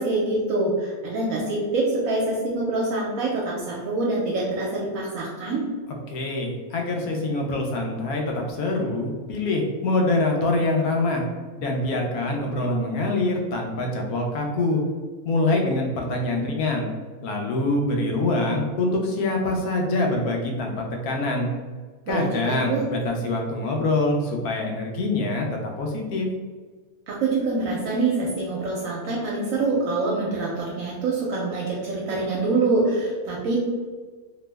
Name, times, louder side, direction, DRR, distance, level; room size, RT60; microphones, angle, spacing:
voice 1, 0.0-5.6 22.1-22.8 27.1-33.6, right 3 dB, 75° right, -4 dB, 1.0 m, -25 dB
voice 2, 6.1-11.2 11.6-14.8 15.2-16.9 17.2-21.5 22.1-26.3, left 2 dB, 90° left, 1 dB, 1.1 m, -25 dB
2.9 x 2.0 x 3.3 m, 1.4 s
omnidirectional pair, 1.5 m